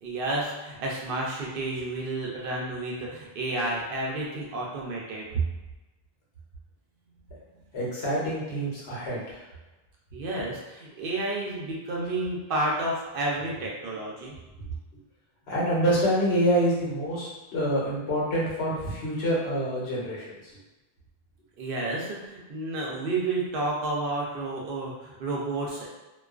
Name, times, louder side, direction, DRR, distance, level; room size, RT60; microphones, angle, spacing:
voice 1, 0.0-5.4 10.1-14.3 21.6-25.9, right 2 dB, 65° right, -3 dB, 0.7 m, -31 dB
voice 2, 7.7-9.4 15.5-20.6, equal, 85° left, -6 dB, 1.1 m, -27 dB
2.3 x 2.3 x 2.3 m, 1.1 s
omnidirectional pair, 1.0 m